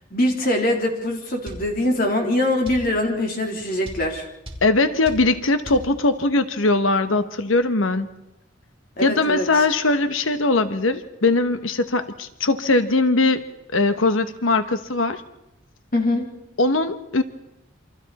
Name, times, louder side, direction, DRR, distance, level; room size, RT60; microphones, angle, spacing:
voice 1, 0.1-4.3 9.0-9.6 15.9-16.3, left 1 dB, 45° left, 1 dB, 3.5 m, -23 dB
sound 1, 1.5-1.7 2.7-2.9 3.9-4.1 4.5-4.7 5.1-5.3 5.7-5.9, equal, 25° right, 2.9 m, -35 dB
voice 2, 4.6-8.1 9.0-15.2 16.6-17.2, left 2 dB, 85° left, 10 dB, 1.1 m, -20 dB
28.0 x 25.0 x 4.2 m, 0.86 s
head